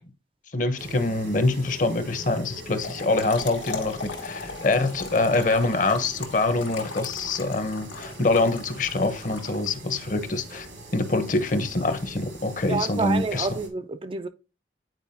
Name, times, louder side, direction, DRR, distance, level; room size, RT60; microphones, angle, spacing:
voice 1, 0.5-10.7 10.9-13.6, left 2 dB, 45° left, 0.8 m, -25 dB
sound 1, 0.8-13.7, right 1 dB, 85° right, 2.3 m, -42 dB
Trickle dribble / Fill (with liquid), 2.6-10.0, left 4 dB, 80° left, 1.4 m, -38 dB
voice 2, 12.7-14.3, right 4 dB, 30° right, 0.3 m, -28 dB
9.2 x 4.5 x 2.7 m
head